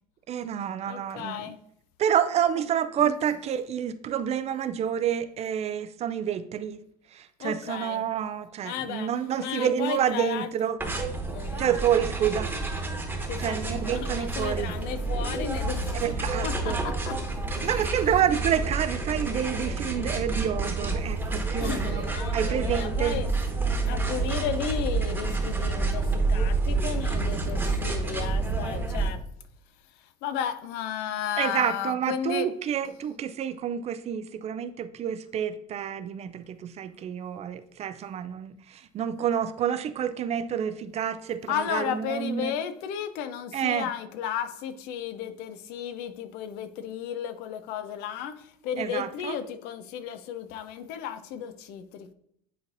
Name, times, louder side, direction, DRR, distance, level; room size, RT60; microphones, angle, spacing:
voice 1, 0.3-1.5 2.0-6.8 7.1-10.8 11.6-12.5 13.4-14.8 16.0-16.8 17.6-23.2 31.4-42.5 43.5-43.9 48.8-49.4, right 9 dB, 35° right, 11 dB, 0.4 m, -28 dB
voice 2, 0.9-1.6 3.0-3.1 7.4-8.0 8.6-9.1 9.4-10.5 11.3-11.7 13.3-16.1 16.4-17.2 21.6-23.3 23.9-29.2 30.2-32.5 41.5-52.1, left 8 dB, 55° left, 11 dB, 0.6 m, -34 dB
sound 1, 10.8-29.1, right 3 dB, 10° right, 1.3 m, -29 dB
9.6 x 3.9 x 2.6 m, 0.72 s
hypercardioid pair, 80°, 19 cm